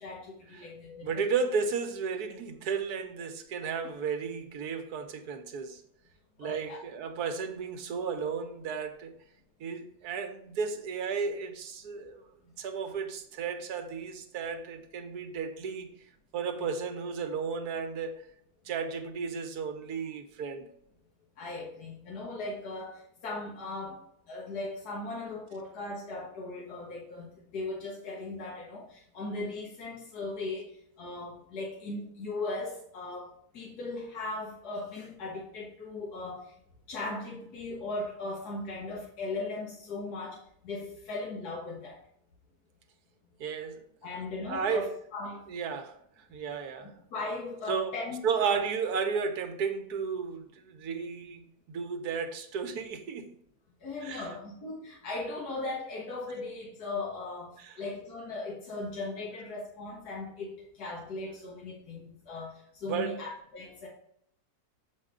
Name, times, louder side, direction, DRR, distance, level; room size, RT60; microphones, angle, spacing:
voice 1, 0.0-1.2 6.4-6.8 16.6-16.7 21.4-24.0 24.3-36.5 36.9-42.0 44.0-45.4 46.8-48.6 53.8-63.9, left 2 dB, 75° left, 1.9 m, -38 dB
voice 2, 1.0-5.8 6.4-9.1 9.6-15.9 16.3-18.2 18.6-20.7 43.4-43.8 44.5-44.9 45.5-46.9 47.7-47.9 48.2-51.4 51.7-53.3 54.0-54.3 62.9-63.2, right 5 dB, 75° right, 1.4 m, -33 dB
7.6 x 4.9 x 3.7 m
omnidirectional pair, 1.7 m